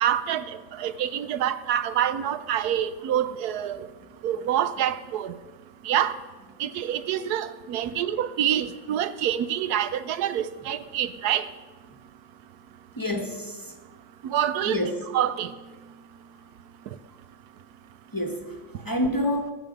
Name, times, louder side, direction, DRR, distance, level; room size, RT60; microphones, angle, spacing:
voice 1, 0.0-3.9 4.2-5.3 5.8-6.2 6.6-11.5 14.2-14.8 15.1-15.5, right 10 dB, 70° right, 14 dB, 1.0 m, -26 dB
voice 2, 13.0-13.8 14.6-15.0 18.1-19.5, left 1 dB, 15° left, 3 dB, 1.0 m, -28 dB
20.5 x 9.1 x 5.2 m, 1.4 s
omnidirectional pair, 2.1 m